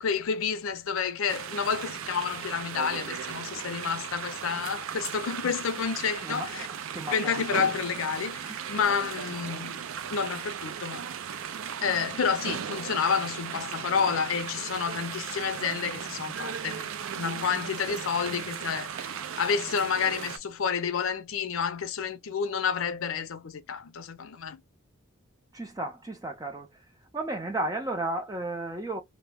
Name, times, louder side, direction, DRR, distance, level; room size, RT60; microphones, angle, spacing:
voice 1, 0.0-6.7 7.1-11.1 11.8-24.6, left 6 dB, 85° left, 0.5 m, -30 dB
sound 1, 1.3-20.4, right 8 dB, 85° right, 0.4 m, -37 dB
voice 2, 6.9-7.5 25.5-26.7 27.1-29.0, right 2 dB, 15° right, 0.6 m, -33 dB
2.1 x 2.1 x 3.4 m
head